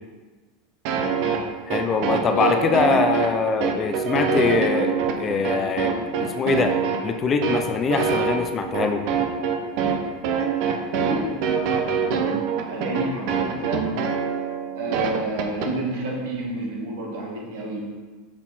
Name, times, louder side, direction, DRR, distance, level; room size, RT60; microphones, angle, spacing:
sound 1, 0.8-15.7, right 6 dB, 55° right, 0.8 m, -24 dB
voice 1, 1.7-5.9 6.2-6.8 7.0-9.1, left 5 dB, 25° left, 6 dB, 0.6 m, -23 dB
voice 2, 2.3-2.8 10.9-11.4 11.7-13.9 14.7-17.9, right 1 dB, 80° right, -2 dB, 2.2 m, -30 dB
6.2 x 6.0 x 4.3 m, 1.4 s
supercardioid pair, 145°, 0 cm